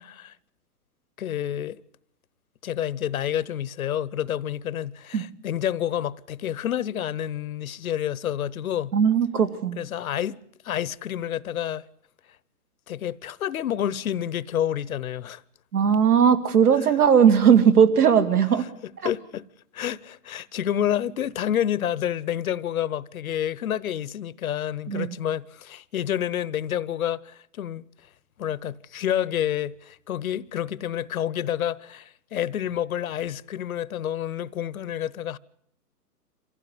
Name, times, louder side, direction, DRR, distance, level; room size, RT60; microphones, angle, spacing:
voice 1, 1.2-1.8 2.6-8.9 9.8-10.4 10.6-11.8 12.9-15.4 19.0-19.4 19.7-27.8 28.4-35.4, left 10 dB, 60° left, 0.9 m, -29 dB
voice 2, 8.9-9.8 15.7-18.7 24.9-25.1, right 7 dB, 70° right, 2.3 m, -18 dB
25.0 x 16.0 x 9.6 m
hypercardioid pair, 140°, 47 cm